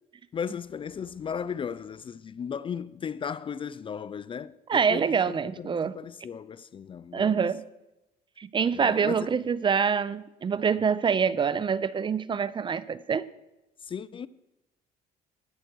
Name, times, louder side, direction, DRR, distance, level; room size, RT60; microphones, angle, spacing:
voice 1, 0.3-7.5 8.7-9.3 13.8-14.3, left 7 dB, 30° left, 0.4 m, -36 dB
voice 2, 4.7-5.9 7.1-7.6 8.4-13.3, right 6 dB, 30° right, 0.5 m, -25 dB
19.0 x 7.9 x 4.6 m
cardioid pair, 110°, 17 cm